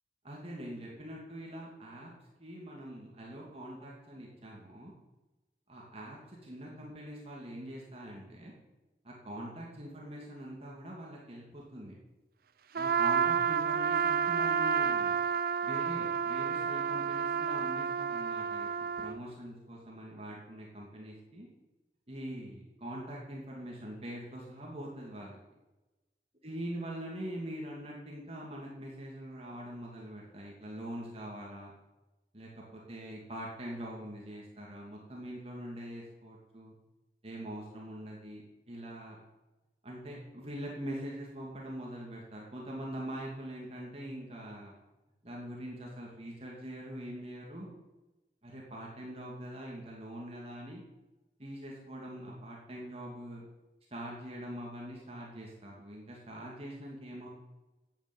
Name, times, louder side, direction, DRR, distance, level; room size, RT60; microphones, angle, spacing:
voice 1, 0.2-2.1 2.4-4.9 5.7-8.5 9.0-11.9 12.7-15.2 15.6-21.5 22.1-25.4 26.4-31.7 32.3-36.7 37.2-38.4 38.7-39.2 39.8-44.7 45.2-47.7 48.4-50.8 51.4-53.4 53.9-57.3, right 1 dB, 35° right, -3 dB, 2.7 m, -43 dB
Trumpet, 12.7-19.2, right 6 dB, 55° right, 0.6 m, -30 dB
12.0 x 8.9 x 9.3 m, 1.1 s
head